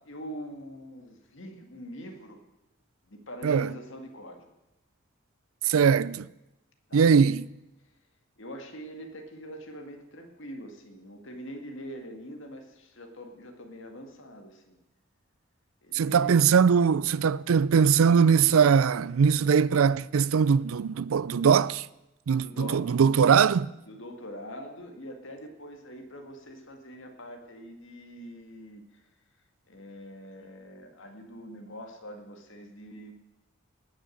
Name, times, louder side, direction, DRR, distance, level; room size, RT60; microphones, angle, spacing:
voice 1, 0.1-2.4 3.1-4.5 6.9-7.1 8.4-14.8 15.8-16.5 22.4-23.0 23.9-29.0 29.7-33.1, equal, 65° left, 2.0 m, -43 dB
voice 2, 5.6-6.3 6.9-7.5 15.9-21.9 22.3-23.7, right 6 dB, 85° right, 0.4 m, -21 dB
19.0 x 6.6 x 7.8 m
head